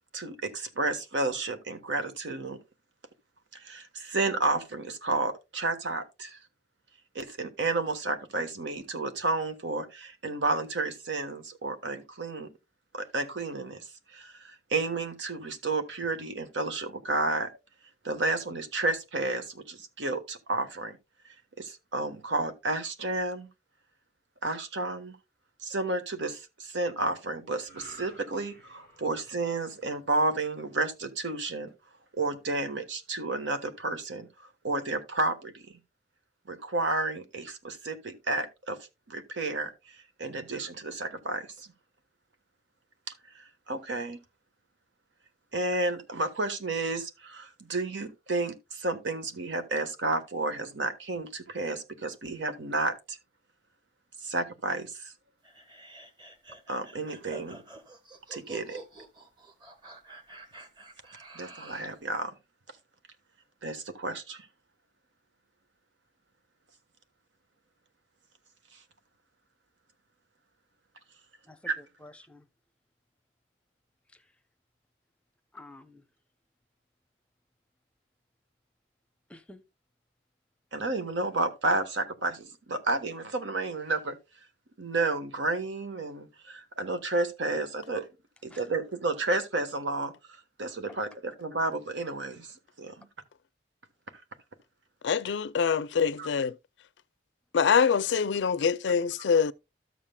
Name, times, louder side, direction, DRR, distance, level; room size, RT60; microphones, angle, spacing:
voice 1, 0.1-2.6 3.5-6.4 7.1-12.5 12.9-17.5 18.0-21.0 21.6-23.5 24.4-25.2 25.6-31.7 32.1-35.6 36.5-38.8 39.1-41.7 43.3-44.2 45.5-53.2 54.2-55.1 56.7-57.6 58.3-58.8 61.3-62.3 63.6-64.5 71.7-71.8 80.7-84.2 84.8-88.0 88.4-90.1 90.6-93.1 96.2-96.3, right 2 dB, 85° right, 1.2 m, -31 dB
sound 1, 27.6-31.0 31.5-31.7, right 1 dB, 70° right, 6.1 m, -53 dB
sound 2, 55.4-62.0, right 2 dB, 25° right, 1.2 m, -48 dB
voice 2, 71.4-72.5 74.1-74.3 75.5-76.0 79.3-79.6 88.5-88.6 90.9-91.0, left 1 dB, 5° left, 0.6 m, -50 dB
voice 3, 95.0-96.5 97.5-99.5, left 6 dB, 75° left, 0.4 m, -25 dB
13.0 x 7.3 x 2.2 m
head